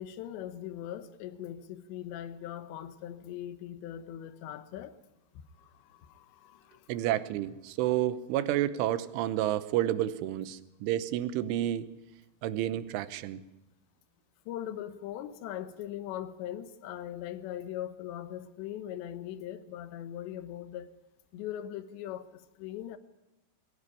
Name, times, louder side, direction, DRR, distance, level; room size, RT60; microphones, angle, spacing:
voice 1, 0.0-5.0 5.6-6.9 14.5-20.9 21.3-23.0, left 11 dB, 75° left, 3.2 m, -40 dB
voice 2, 6.9-11.9 12.4-13.4, right 13 dB, 90° right, 3.4 m, -30 dB
22.5 x 15.5 x 9.9 m
omnidirectional pair, 5.4 m